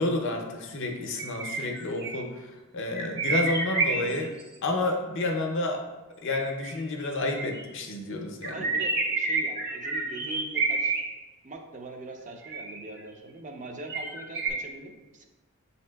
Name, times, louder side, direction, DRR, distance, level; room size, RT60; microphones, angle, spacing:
voice 1, 0.0-2.5 2.7-4.3 4.6-5.8 6.2-8.6, left 2 dB, 55° left, 3 dB, 0.6 m, -30 dB
sound 1, 1.2-2.2 2.9-4.4 6.3-7.7 8.4-11.0 12.4-13.0 13.9-14.5, right 4 dB, 50° right, 1.1 m, -29 dB
voice 2, 8.5-11.0 11.4-15.3, right 2 dB, 35° right, 3 dB, 0.5 m, -42 dB
7.2 x 2.7 x 2.2 m, 1.2 s
head